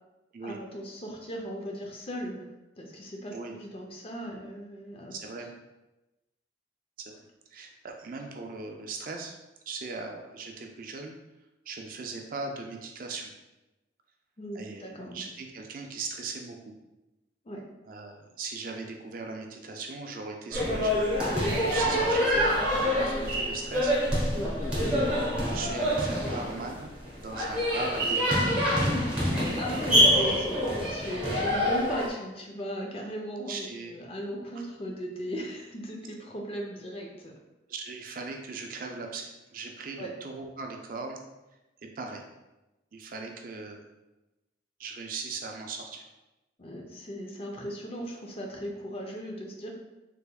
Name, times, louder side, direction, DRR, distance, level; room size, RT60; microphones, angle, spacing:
voice 1, 0.4-2.5 2.8-5.1 14.4-15.2 17.4-17.7 21.5-21.7 24.3-24.6 28.0-28.1 28.8-29.2 29.6-37.3 40.0-40.1 46.6-49.7, equal, 30° left, 1 dB, 0.5 m, -37 dB
voice 2, 5.1-5.5 7.5-9.4 9.7-11.1 11.7-13.3 14.5-16.6 17.8-21.0 21.6-22.5 22.8-24.0 25.4-28.5 29.5-30.0 33.5-34.0 37.7-41.2 42.0-42.2 42.9-43.9 44.8-46.0, right 4 dB, 45° right, 3 dB, 0.4 m, -39 dB
sound 1, 20.5-32.1, equal, 5° right, 0.9 m, -26 dB
3.4 x 3.3 x 2.3 m, 1.0 s
head